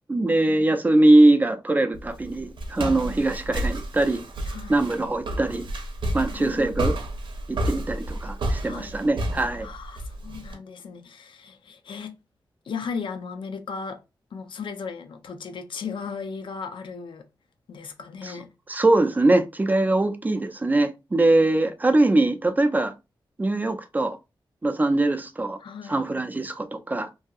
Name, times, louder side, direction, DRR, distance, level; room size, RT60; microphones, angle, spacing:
voice 1, 0.1-4.2 4.7-5.7 6.1-6.9 7.5-9.7 18.2-18.4 18.7-22.9 23.4-24.2 24.6-25.6 25.9-27.1, right 2 dB, 20° right, 0.3 m, -22 dB
Walk footsteps, 1.9-10.5, right 1 dB, 85° right, 0.6 m, -31 dB
voice 2, 6.2-6.7 8.6-9.0 9.6-12.1 12.7-14.0 14.3-17.3 17.7-18.5 25.6-26.1, left 5 dB, 85° left, 0.5 m, -36 dB
2.7 x 2.7 x 2.3 m
wide cardioid pair, 140°, 8 cm